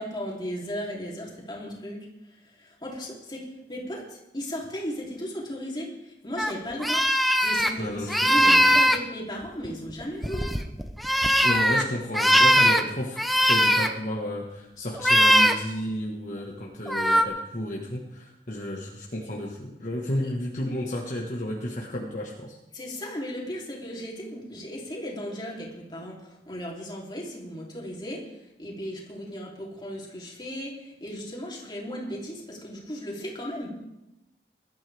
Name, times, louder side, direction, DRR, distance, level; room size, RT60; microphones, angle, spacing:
voice 1, 0.0-2.1 2.6-3.4 3.7-4.0 4.3-10.5 20.2-20.3 22.7-28.2 28.6-33.8, equal, 25° left, -4 dB, 3.5 m, -36 dB
sound 1, 6.4-6.5 6.8-7.7 8.1-9.0 9.6-11.8 12.1-12.8 13.2-13.9 15.0-15.5 16.9-17.2, equal, ahead, 0.7 m, -20 dB
voice 2, 7.8-8.8 11.4-22.6, left 1 dB, 45° left, -2 dB, 1.7 m, -32 dB
21.0 x 12.5 x 3.6 m, 0.91 s
head